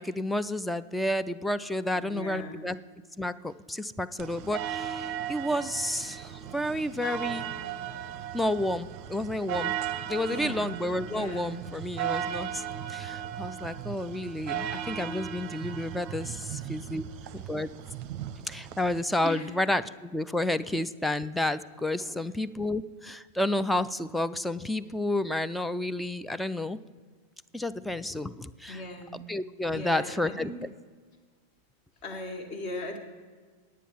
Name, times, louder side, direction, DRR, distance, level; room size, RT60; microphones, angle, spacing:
voice 1, 0.0-2.8 3.2-7.5 8.3-9.8 10.1-12.6 12.9-17.1 17.3-17.7 18.5-26.8 27.5-28.8 29.1-30.7, left 1 dB, 5° left, 12 dB, 0.4 m, -31 dB
voice 2, 1.9-2.7 10.2-10.7 11.0-11.6 19.2-19.5 22.0-22.2 28.7-29.2 29.7-30.6 32.0-33.0, left 1 dB, 40° left, 4 dB, 1.9 m, -38 dB
sound 1, 4.2-19.0, right 10 dB, 40° right, 0.6 m, -36 dB
10.0 x 8.5 x 7.1 m, 1.5 s
figure-of-eight pair, 90°, 0 cm